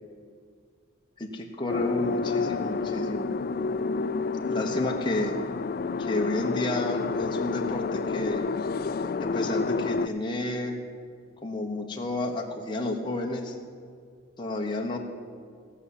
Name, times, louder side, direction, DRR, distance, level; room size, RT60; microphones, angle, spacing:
voice 1, 1.2-3.3 4.4-5.3 6.0-8.5 9.2-10.8 11.4-13.5 14.4-15.0, left 2 dB, 25° left, 0 dB, 1.1 m, -31 dB
sound 1, 1.7-10.1, left 4 dB, 45° left, 0.3 m, -29 dB
16.5 x 5.7 x 8.4 m, 2.1 s
head